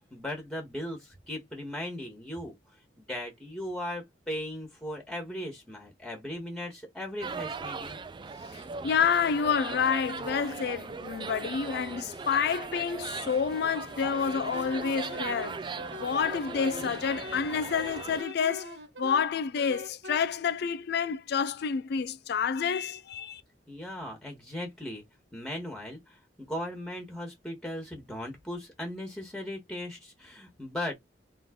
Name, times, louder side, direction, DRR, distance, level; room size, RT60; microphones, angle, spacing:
voice 1, 0.1-2.5 3.0-8.0 23.7-25.0 25.3-30.9, left 1 dB, 5° left, 1.5 m, -38 dB
sound 1, 7.2-18.2, right 4 dB, 25° right, 0.4 m, -39 dB
voice 2, 8.5-15.6 16.0-23.4, left 6 dB, 65° left, 0.4 m, -29 dB
Wind instrument woodwind instrument, 14.5-20.2, left 1 dB, 80° right, 1.4 m, -43 dB
3.7 x 3.1 x 3.8 m
head